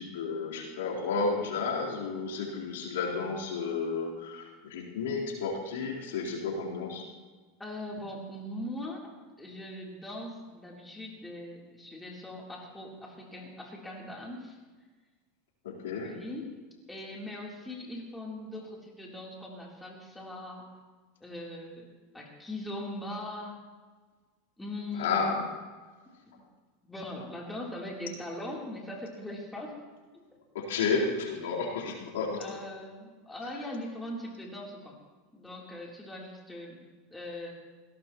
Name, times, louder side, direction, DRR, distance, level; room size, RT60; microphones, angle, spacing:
voice 1, 0.0-7.0 15.6-16.1 25.0-25.4 30.5-32.5, left 4 dB, 85° left, -4 dB, 4.1 m, -32 dB
voice 2, 7.6-9.1 9.4-14.6 16.0-16.6 16.9-20.7 21.2-21.9 22.1-23.7 24.6-25.3 26.3-26.4 26.8-29.7 30.1-30.2 32.4-35.0 35.3-36.8 37.1-37.5, left 1 dB, 10° left, -3 dB, 3.6 m, -40 dB
21.0 x 17.5 x 3.1 m, 1.4 s
supercardioid pair, 120°, 0 cm